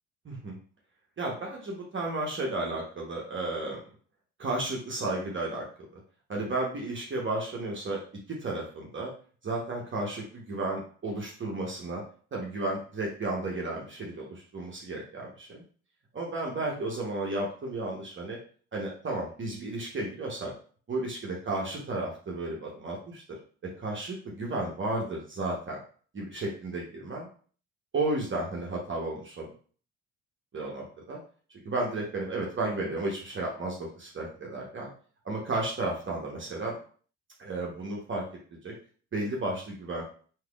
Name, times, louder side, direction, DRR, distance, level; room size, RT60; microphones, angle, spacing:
voice 1, 0.2-0.6 1.2-3.8 4.4-5.6 6.3-8.0 8.3-9.1 9.4-12.0 12.3-15.6 16.1-18.4 18.7-20.5 20.9-23.2 23.8-25.8 26.1-27.3 27.9-29.5 30.5-31.2 31.6-34.9 35.2-36.8 37.4-38.2 38.6-38.7 39.1-40.0, right 2 dB, 30° right, -2 dB, 1.0 m, -33 dB
3.4 x 2.9 x 2.3 m, 0.44 s
hypercardioid pair, 50°, 38 cm